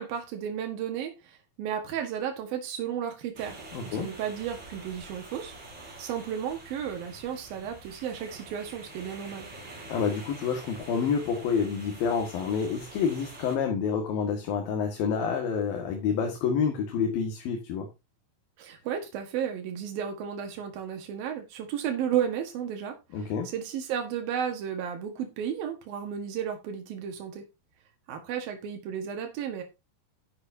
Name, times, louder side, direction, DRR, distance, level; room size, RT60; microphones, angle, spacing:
voice 1, 0.0-3.6 3.8-9.5 18.6-27.4 28.1-29.6, right 8 dB, 90° right, 3.4 m, -33 dB
sound 1, 3.4-13.6, right 2 dB, 30° right, 4.3 m, -46 dB
voice 2, 3.7-4.1 9.9-17.9 23.1-23.5, left 6 dB, 90° left, 3.7 m, -28 dB
11.0 x 9.9 x 2.8 m
omnidirectional pair, 4.0 m